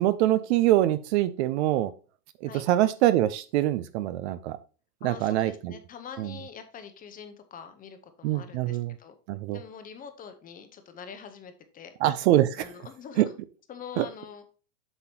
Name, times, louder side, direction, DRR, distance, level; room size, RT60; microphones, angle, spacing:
voice 1, 0.0-1.9 2.4-4.6 5.0-5.7 6.2-6.3 8.2-8.9 9.3-9.6 12.0-12.7 13.2-13.3 14.0-14.1, right 14 dB, 45° right, 14 dB, 0.5 m, -24 dB
voice 2, 5.0-9.1 9.5-12.0 12.6-13.3 13.7-14.4, left 7 dB, 20° left, 9 dB, 0.7 m, -44 dB
8.0 x 5.8 x 2.8 m, 0.36 s
supercardioid pair, 145°, 45 cm